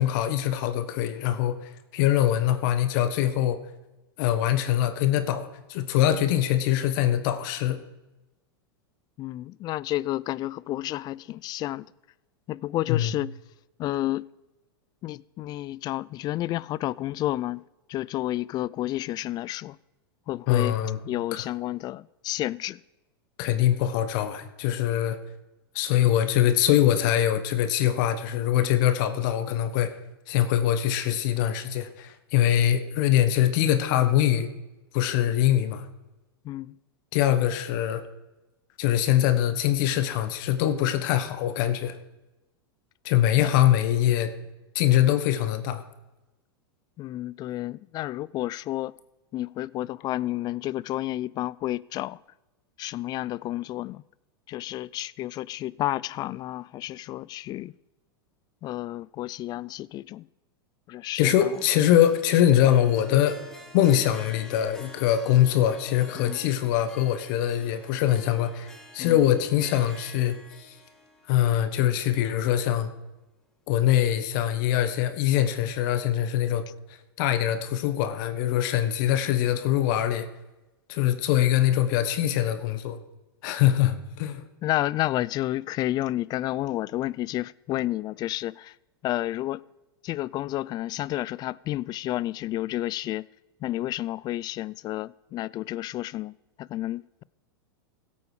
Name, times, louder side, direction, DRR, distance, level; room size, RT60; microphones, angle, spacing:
voice 1, 0.0-3.6 4.2-7.8 12.9-13.1 20.5-21.0 21.3-21.4 23.4-25.2 25.7-29.9 30.3-34.5 34.9-35.9 37.1-38.0 38.8-42.0 43.0-44.3 44.7-45.8 61.1-63.4 63.7-70.7 71.3-72.9 73.7-76.6 77.2-80.3 80.9-83.0 83.4-84.4, left 11 dB, 55° left, 1.2 m, -23 dB
voice 2, 9.2-11.9 12.5-13.3 13.8-14.3 15.0-17.6 17.9-19.8 20.3-20.7 21.0-22.8 36.4-36.8 43.4-43.5 47.0-48.9 49.3-52.2 52.8-54.0 54.5-57.7 58.6-60.3 60.9-61.6 66.2-66.4 69.0-69.2 84.6-88.8 89.0-89.6 90.0-93.3 93.6-97.2, left 15 dB, 35° left, 0.3 m, -31 dB
Harp, 61.5-72.8, equal, 5° left, 2.1 m, -49 dB
16.0 x 8.5 x 4.9 m
hypercardioid pair, 105°, 13 cm